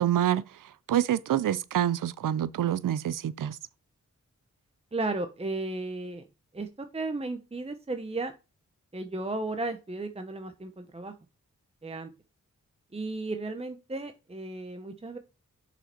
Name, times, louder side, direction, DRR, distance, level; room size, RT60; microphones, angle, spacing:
voice 1, 0.0-3.6, right 11 dB, 90° right, 0.5 m, -27 dB
voice 2, 4.9-6.3 6.5-8.3 8.9-11.1 11.8-12.1 12.9-15.2, right 2 dB, 20° right, 0.8 m, -34 dB
6.5 x 5.1 x 4.4 m
wide cardioid pair, 70°, 31 cm